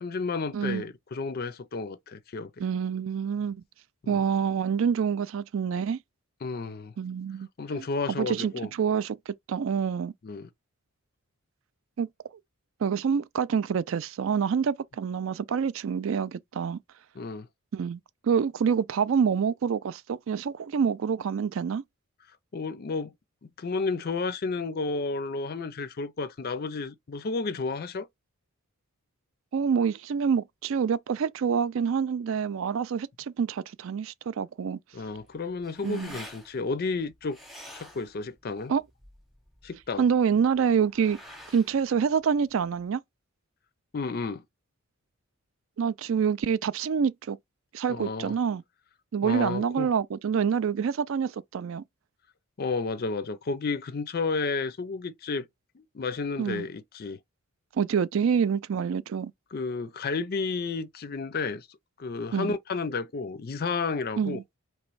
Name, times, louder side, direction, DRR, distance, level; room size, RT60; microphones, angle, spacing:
voice 1, 0.0-2.5 4.1-4.2 6.4-6.9 7.6-8.7 10.2-10.5 17.2-17.5 22.5-23.1 23.6-28.1 34.9-37.4 37.7-38.7 39.6-40.0 43.9-44.4 47.9-48.3 49.2-49.9 52.6-55.5 55.8-57.2 59.5-61.7 62.0-64.4, left 4 dB, 45° left, 0.4 m, -32 dB
voice 2, 0.5-0.8 2.6-3.6 4.1-6.0 7.0-7.5 7.7-10.1 12.0-12.1 12.8-16.8 17.7-21.8 29.5-34.8 35.8-36.2 38.7-38.8 40.0-41.2 41.5-43.0 45.8-47.4 47.7-48.6 49.1-51.8 56.4-56.7 57.7-59.3 62.3-62.6 64.2-64.4, right 7 dB, 60° right, 0.3 m, -27 dB
sound 1, 35.0-42.9, equal, ahead, 0.8 m, -49 dB
3.1 x 3.0 x 4.6 m
head